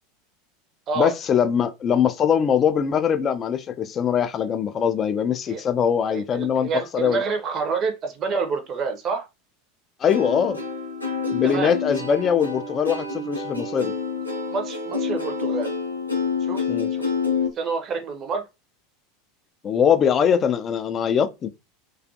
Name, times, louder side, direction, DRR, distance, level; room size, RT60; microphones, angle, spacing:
voice 1, 1.0-7.2 10.0-10.6 11.3-13.9 16.7-16.9 19.6-21.5, left 8 dB, 30° left, 0.3 m, -22 dB
voice 2, 6.1-9.3 11.4-11.7 14.5-15.7 16.4-16.6 16.9-17.0 17.6-18.4, right 5 dB, 35° right, 0.6 m, -27 dB
Plucked string instrument, 10.1-17.5, left 5 dB, 90° right, 0.6 m, -28 dB
2.4 x 2.3 x 2.6 m
figure-of-eight pair, 80°, 0 cm